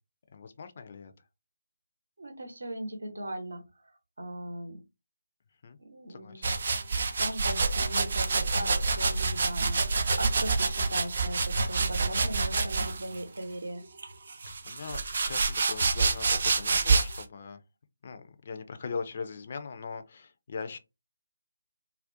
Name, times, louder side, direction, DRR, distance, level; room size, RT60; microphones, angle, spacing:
voice 1, 0.3-1.1 5.6-5.8 6.1-6.4 14.6-17.6 18.0-20.8, left 5 dB, 40° left, 0.3 m, -40 dB
voice 2, 2.2-4.8 5.8-6.5 6.9-13.8, right 1 dB, 65° right, 0.8 m, -39 dB
sound 1, 6.4-13.2 14.0-17.2, right 4 dB, 45° right, 0.4 m, -27 dB
2.3 x 2.1 x 2.5 m
figure-of-eight pair, 150°, 0 cm